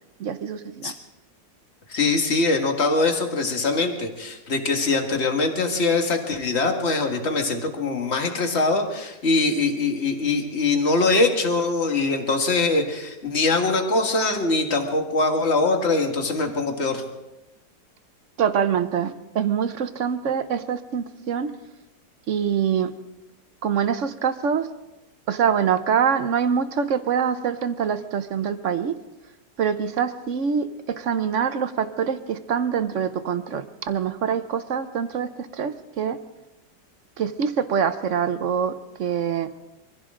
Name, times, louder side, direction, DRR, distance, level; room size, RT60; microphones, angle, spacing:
voice 1, 0.2-0.9 18.4-21.5 22.3-22.9 23.6-24.7 25.3-28.9 29.6-36.2 37.2-39.5, right 7 dB, 55° right, 11 dB, 0.9 m, -25 dB
voice 2, 1.9-17.0, left 3 dB, 35° left, 4 dB, 1.9 m, -22 dB
24.5 x 15.5 x 3.7 m, 0.98 s
omnidirectional pair, 2.0 m